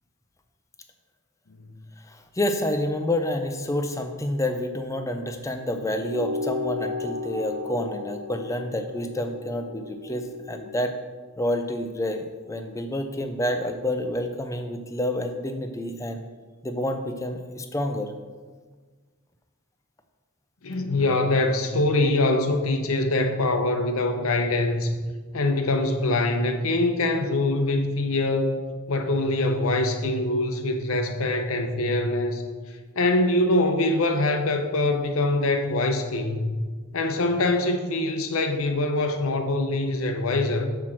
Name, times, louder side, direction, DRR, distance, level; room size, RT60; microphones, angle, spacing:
voice 1, 2.1-10.9 11.4-16.2 16.6-18.1, left 1 dB, 15° left, 7 dB, 0.5 m, -28 dB
sound 1, 6.0-10.8, left 3 dB, 85° right, 1.4 m, -34 dB
voice 2, 20.6-25.0 25.3-32.4 33.0-36.5 36.9-40.7, left 2 dB, 80° left, 6 dB, 0.8 m, -24 dB
5.9 x 4.4 x 6.2 m, 1.5 s
head